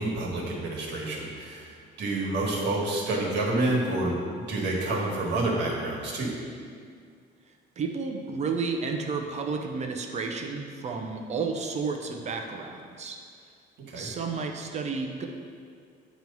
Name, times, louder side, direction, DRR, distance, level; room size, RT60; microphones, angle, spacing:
voice 1, 0.0-6.3 13.9-14.1, right 2 dB, 75° right, -2 dB, 1.5 m, -28 dB
voice 2, 7.5-13.2 13.9-15.3, right 4 dB, 40° right, 3 dB, 0.6 m, -32 dB
9.1 x 3.1 x 5.4 m, 2.2 s
cardioid pair, 140°, 18 cm